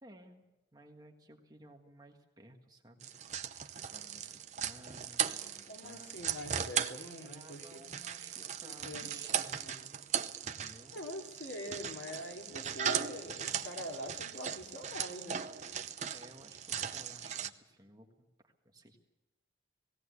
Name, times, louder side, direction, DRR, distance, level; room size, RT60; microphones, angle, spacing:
voice 1, 0.0-3.1 3.4-6.2 7.2-11.0 16.1-19.0, right 1 dB, 20° right, 2 dB, 1.6 m, -57 dB
sound 1, 3.0-17.5, right 8 dB, 40° right, 0.7 m, -38 dB
voice 2, 5.7-7.9 8.6-9.9 10.9-15.4, left 1 dB, 90° left, 1 dB, 2.8 m, -45 dB
19.0 x 17.0 x 8.2 m, 1.0 s
head